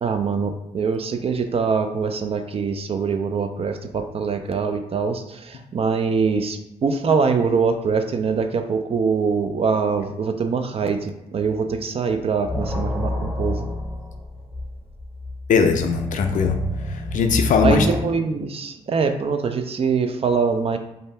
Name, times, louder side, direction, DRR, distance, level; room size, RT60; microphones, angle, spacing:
voice 1, 0.0-13.7 17.6-20.8, right 5 dB, 40° right, 7 dB, 0.4 m, -23 dB
sound 1, 11.4-11.8 12.1-18.0, left 1 dB, ahead, 0.8 m, -29 dB
voice 2, 15.5-16.6 16.9-17.9, left 6 dB, 60° left, 5 dB, 0.4 m, -20 dB
2.6 x 2.2 x 3.3 m, 0.88 s
supercardioid pair, 50°, 15 cm